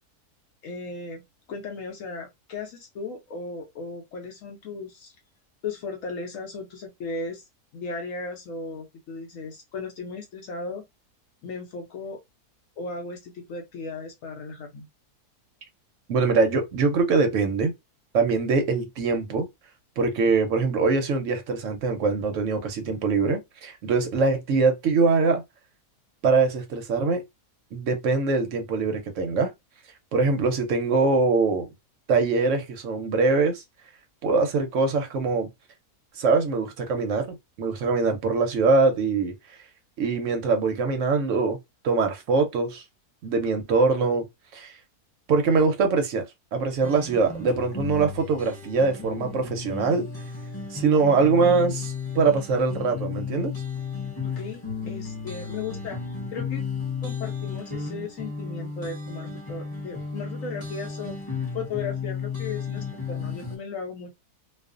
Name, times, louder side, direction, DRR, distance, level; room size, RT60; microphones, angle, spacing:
voice 1, 0.6-1.2 1.5-5.1 5.6-7.4 7.7-10.8 11.4-12.2 12.8-14.9 54.2-56.0 56.3-56.6 57.0-61.2 61.5-64.2, left 4 dB, 65° left, 0.9 m, -36 dB
voice 2, 16.1-17.7 18.1-19.5 20.0-25.4 26.2-27.2 27.7-29.5 30.1-31.7 32.1-33.6 34.2-35.5 36.2-39.3 40.0-41.6 41.8-42.8 43.2-44.2 44.5-44.8 45.3-46.2 46.5-50.1 50.7-53.5, right 4 dB, 65° right, 0.8 m, -23 dB
sound 1, 46.8-63.6, left 5 dB, 20° left, 0.7 m, -33 dB
2.4 x 2.4 x 2.4 m
omnidirectional pair, 1.7 m